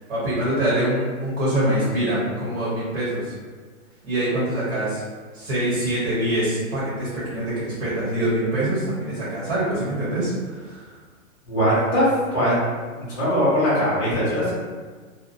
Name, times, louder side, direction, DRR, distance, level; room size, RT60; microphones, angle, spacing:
voice 1, 0.1-3.4 4.0-5.0 5.3-10.9, right 1 dB, 60° right, -9 dB, 1.3 m, -24 dB
voice 2, 11.5-12.1 12.3-12.5 12.9-14.5, equal, 20° left, -13 dB, 0.5 m, -21 dB
2.8 x 2.2 x 2.6 m, 1.5 s
hypercardioid pair, 160°, 42 cm